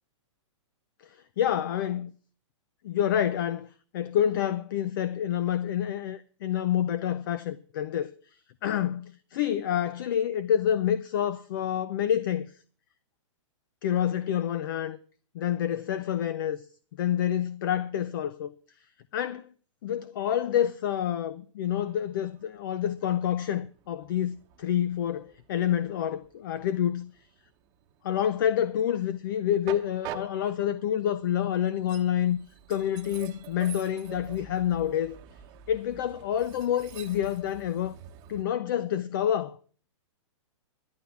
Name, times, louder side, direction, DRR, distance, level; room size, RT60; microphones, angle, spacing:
voice 1, 1.0-2.1 2.8-8.1 8.6-12.5 13.8-15.0 15.3-16.6 17.0-18.5 19.1-19.5 19.8-27.1 28.0-32.4 32.7-35.2 35.7-37.9 38.3-39.6, left 10 dB, 40° left, 0.7 m, -28 dB
Train, 21.6-38.4, right 10 dB, 25° right, 1.1 m, -47 dB
11.5 x 11.5 x 5.8 m
hypercardioid pair, 170°, 16 cm